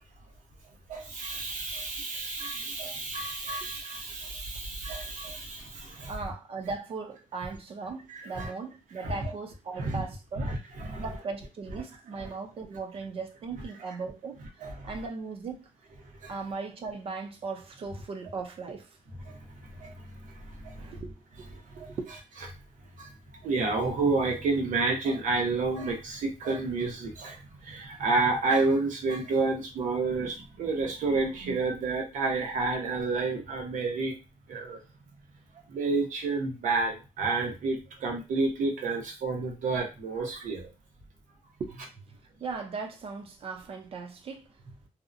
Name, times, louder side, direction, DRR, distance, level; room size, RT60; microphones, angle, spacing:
voice 1, 0.9-6.1 8.1-8.5 9.0-9.1 9.8-10.0 10.4-11.0 14.6-14.9 16.2-16.3 19.3-19.4 19.8-19.9 20.6-20.7 21.8-21.9 23.0-23.1 23.4-34.2 34.5-34.8 35.7-40.7, right 3 dB, 85° right, 0.8 m, -30 dB
voice 2, 6.1-10.6 11.0-14.4 14.8-15.7 16.3-19.0 20.8-21.5 21.8-22.0 41.6-44.8, right 4 dB, 50° right, 0.5 m, -38 dB
2.7 x 2.1 x 2.5 m
wide cardioid pair, 160°, 13 cm